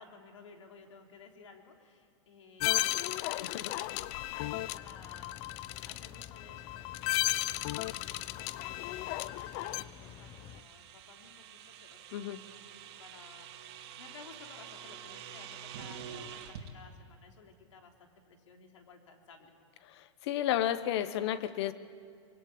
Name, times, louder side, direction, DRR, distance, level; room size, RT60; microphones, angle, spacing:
voice 1, 0.0-5.5 5.8-19.5, left 5 dB, 90° left, 3 dB, 3.4 m, -56 dB
sound 1, 2.6-9.8, left 17 dB, 45° left, 0.6 m, -34 dB
voice 2, 3.4-3.7 12.1-12.4 19.9-21.7, left 11 dB, 60° left, 14 dB, 1.3 m, -32 dB
sound 2, 4.5-10.6, left 9 dB, 30° left, 1.1 m, -51 dB
sound 3, 7.9-16.7, right 9 dB, 60° right, 2.8 m, -48 dB
24.0 x 21.5 x 8.7 m, 2.3 s
hypercardioid pair, 135°, 15 cm